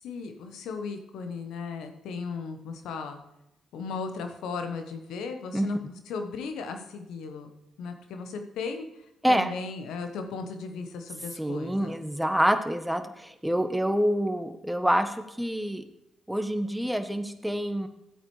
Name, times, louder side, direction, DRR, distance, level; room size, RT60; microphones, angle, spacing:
voice 1, 0.0-3.2 3.7-7.5 7.8-8.9 9.3-11.9, left 5 dB, 75° left, 6 dB, 1.2 m, -36 dB
voice 2, 11.4-15.9 16.3-17.9, equal, 5° right, 8 dB, 1.2 m, -27 dB
13.5 x 8.5 x 3.3 m, 0.87 s
hypercardioid pair, 45°, 0 cm